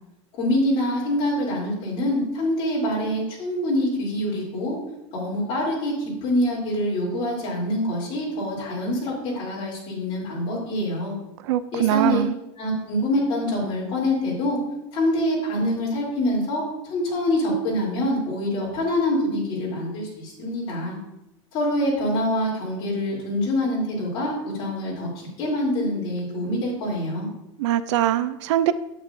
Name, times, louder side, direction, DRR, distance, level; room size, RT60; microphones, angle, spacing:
voice 1, 0.4-4.8 5.1-11.1 11.7-12.2 12.6-14.6 14.9-16.6 16.9-21.0 21.5-27.3, left 1 dB, 35° left, -5 dB, 3.1 m, -25 dB
voice 2, 11.4-12.3 27.6-28.7, right 12 dB, 65° right, 14 dB, 0.4 m, -22 dB
8.9 x 8.3 x 2.6 m, 0.91 s
supercardioid pair, 170°, 16 cm